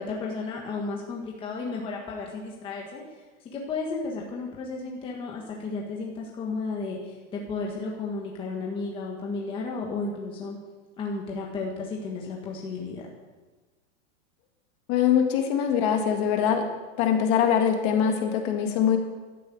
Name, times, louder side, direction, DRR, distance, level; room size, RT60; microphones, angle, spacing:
voice 1, 0.0-3.0 3.4-10.6 11.0-13.1, left 3 dB, 15° left, -1 dB, 1.4 m, -33 dB
voice 2, 14.9-16.6 17.0-19.0, left 8 dB, 30° left, 4 dB, 1.7 m, -23 dB
12.5 x 10.0 x 8.2 m, 1.3 s
supercardioid pair, 170°, 39 cm